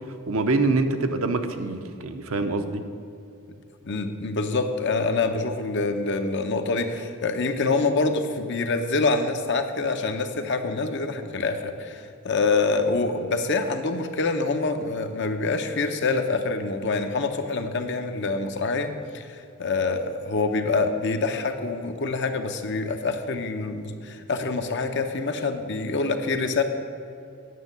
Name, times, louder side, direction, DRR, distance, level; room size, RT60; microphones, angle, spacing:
voice 1, 0.3-2.9, right 3 dB, 65° right, 7 dB, 0.8 m, -25 dB
voice 2, 3.8-26.6, left 3 dB, 50° left, 6 dB, 0.8 m, -26 dB
9.4 x 6.3 x 8.0 m, 2.6 s
head